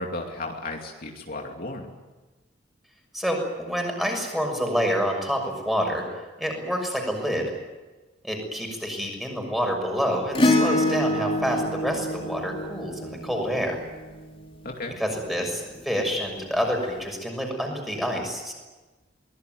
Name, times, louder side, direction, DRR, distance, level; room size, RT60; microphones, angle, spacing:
voice 1, 0.0-2.0 14.6-15.0, left 2 dB, 50° left, 1 dB, 2.7 m, -34 dB
voice 2, 3.1-6.1 6.4-7.5 8.2-13.8 15.0-18.5, equal, ahead, 2 dB, 6.4 m, -27 dB
Acoustic guitar / Strum, 10.4-15.0 16.8-16.9, left 1 dB, 30° left, 3.5 m, -26 dB
23.5 x 20.5 x 9.4 m, 1.2 s
head